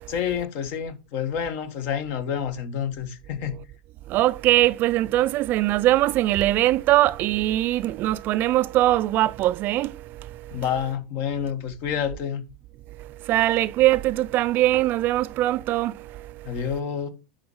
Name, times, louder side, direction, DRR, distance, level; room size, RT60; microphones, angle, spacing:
voice 1, 0.1-3.6 10.5-12.4 16.4-17.1, left 8 dB, 55° left, 1.6 m, -28 dB
voice 2, 4.1-10.6 13.0-16.7, right 15 dB, 45° right, 0.4 m, -22 dB
10.5 x 4.5 x 4.7 m
hypercardioid pair, 105°, 5 cm